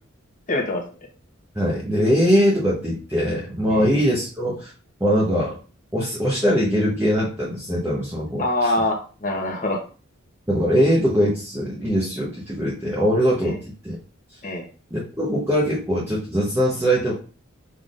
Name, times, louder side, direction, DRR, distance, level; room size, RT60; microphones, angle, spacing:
voice 1, 0.5-0.8 3.7-3.9 8.4-9.8 13.4-13.6 14.4-14.7, left 2 dB, 35° left, 0 dB, 0.9 m, -24 dB
voice 2, 1.5-4.7 5.0-5.5 5.9-8.7 10.5-14.0 14.9-17.1, equal, 10° right, -6 dB, 0.9 m, -21 dB
5.7 x 3.5 x 2.5 m, 0.36 s
head